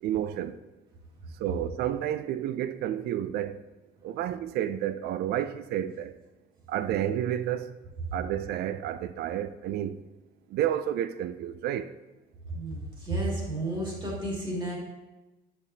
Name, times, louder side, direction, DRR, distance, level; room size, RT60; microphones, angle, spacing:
voice 1, 0.0-0.6 1.4-3.6 4.0-6.1 6.7-7.8 8.1-10.0 10.5-12.0, right 11 dB, 70° right, 0.4 m, -30 dB
voice 2, 12.5-14.8, right 1 dB, 25° right, 2.3 m, -32 dB
8.1 x 5.3 x 2.8 m
cardioid pair, 110°, 17 cm